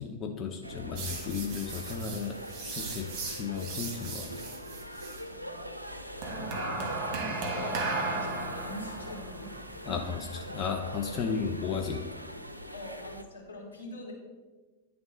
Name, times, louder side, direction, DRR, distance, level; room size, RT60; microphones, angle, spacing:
voice 1, 0.0-4.3 9.8-12.1, left 6 dB, 30° left, 3 dB, 0.5 m, -34 dB
lehavre eishalle, 0.6-13.2, equal, 85° right, 0.4 m, -43 dB
sound 1, 1.0-5.2 6.2-11.6, right 3 dB, 35° right, 1.3 m, -37 dB
voice 2, 5.2-5.6 6.1-10.0 12.7-14.1, left 1 dB, 80° left, -4 dB, 1.9 m, -44 dB
10.5 x 3.5 x 3.7 m, 1.3 s
figure-of-eight pair, 90°, 0 cm